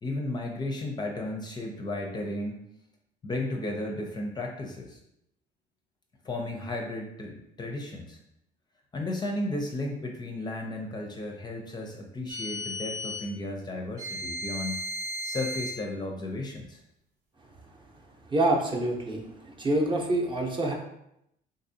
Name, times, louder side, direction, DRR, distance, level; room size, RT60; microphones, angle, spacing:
voice 1, 0.0-2.6 3.2-5.0 6.2-8.2 8.9-14.8 15.2-16.8, left 2 dB, 25° left, 1 dB, 0.5 m, -34 dB
sound 1, 12.3-13.3 14.0-15.8, left 1 dB, 65° right, 0.9 m, -35 dB
voice 2, 18.3-19.2 19.6-20.7, right 2 dB, 30° right, 0 dB, 0.7 m, -26 dB
3.7 x 2.6 x 2.7 m, 0.79 s
cardioid pair, 110°, 17 cm